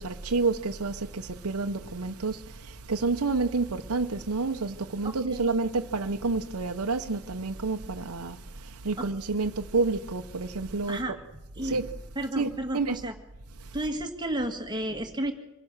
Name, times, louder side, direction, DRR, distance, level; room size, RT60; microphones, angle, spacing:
voice 1, 0.0-11.2 11.6-11.9 12.2-13.0 13.5-13.9, right 3 dB, 80° right, 0.9 m, -29 dB
voice 2, 5.0-5.7 9.0-9.1 10.9-11.2 11.6-11.8 12.2-13.1 13.7-15.3, right 1 dB, 20° right, 1.8 m, -32 dB
25.5 x 16.5 x 6.6 m
head